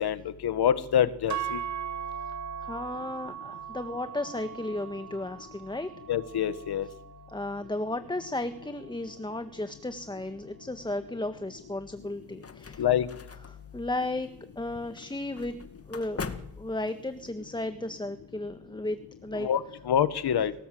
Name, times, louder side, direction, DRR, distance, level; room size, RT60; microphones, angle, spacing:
voice 1, 0.0-1.6 6.1-6.9 12.8-13.1 19.3-20.5, left 9 dB, 75° left, 13 dB, 1.7 m, -26 dB
sound 1, 1.3-9.5, right 9 dB, 45° right, 1.4 m, -40 dB
voice 2, 2.6-5.9 7.3-12.8 13.5-14.3 14.5-15.6 15.9-19.5, left 2 dB, 10° left, 9 dB, 1.7 m, -34 dB
sound 2, 12.0-17.3, left 5 dB, 35° left, 2.0 m, -43 dB
27.5 x 19.5 x 7.9 m, 0.84 s
cardioid pair, 85°, 39 cm